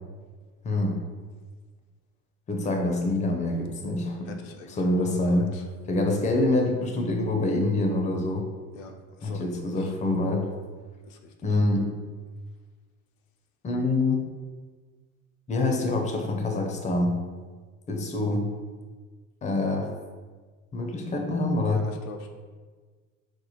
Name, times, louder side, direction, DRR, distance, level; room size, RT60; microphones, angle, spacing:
voice 1, 0.6-1.0 2.5-4.4 4.7-5.5 5.9-8.5 9.2-10.5 11.4-11.9 13.6-14.2 15.5-17.2 17.9-18.5 19.4-19.9 20.7-21.8, left 2 dB, 20° left, 2 dB, 0.5 m, -25 dB
voice 2, 4.3-5.0 5.3-5.6 8.7-8.9 9.2-9.4 9.8-9.9 11.0-11.2 21.6-22.3, left 4 dB, 70° left, 3 dB, 0.5 m, -42 dB
4.2 x 2.1 x 2.9 m, 1.5 s
hypercardioid pair, 70°, 40 cm